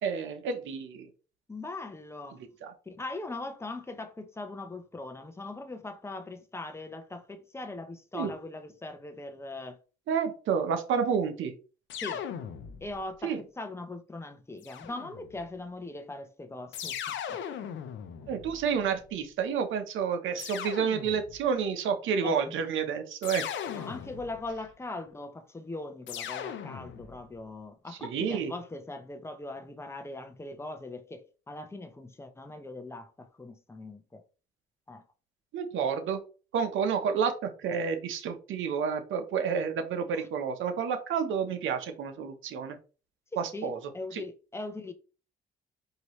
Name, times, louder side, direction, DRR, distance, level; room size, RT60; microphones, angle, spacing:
voice 1, 0.0-1.1 2.6-2.7 8.1-8.3 10.1-11.5 13.2-13.4 18.3-23.4 28.0-28.5 35.5-36.2 36.5-42.8 43.4-43.8 44.1-44.2, right 6 dB, 80° right, 0.9 m, -30 dB
voice 2, 1.5-2.4 2.9-9.8 12.0-12.2 12.8-17.4 18.2-18.3 22.2-22.6 23.7-34.2 34.9-35.0 40.1-40.3 43.3-44.9, left 2 dB, 15° left, 0.8 m, -40 dB
sound 1, 11.9-13.1 14.6-15.5 16.7-19.1 20.4-21.5 23.2-24.6 26.1-27.3, left 9 dB, 70° left, 0.7 m, -39 dB
4.6 x 2.9 x 3.1 m
cardioid pair, 90°, 20 cm